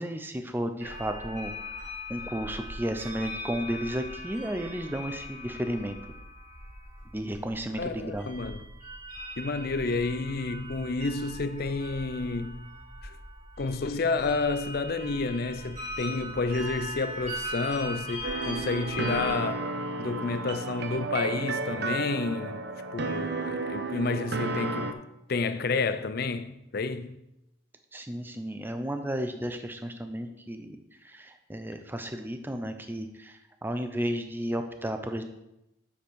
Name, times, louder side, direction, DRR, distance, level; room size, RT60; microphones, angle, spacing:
voice 1, 0.0-6.0 7.1-8.3 27.9-35.2, right 1 dB, 10° right, 0.6 m, -33 dB
sound 1, 0.8-19.3, equal, 40° right, 2.4 m, -40 dB
voice 2, 7.8-8.7 9.4-12.7 13.0-13.2 13.6-19.7 20.0-22.6 22.9-25.0 25.3-27.2, left 3 dB, 50° left, 0.5 m, -30 dB
sound 2, 18.2-24.9, right 3 dB, 55° right, 0.6 m, -32 dB
7.3 x 7.1 x 4.7 m
head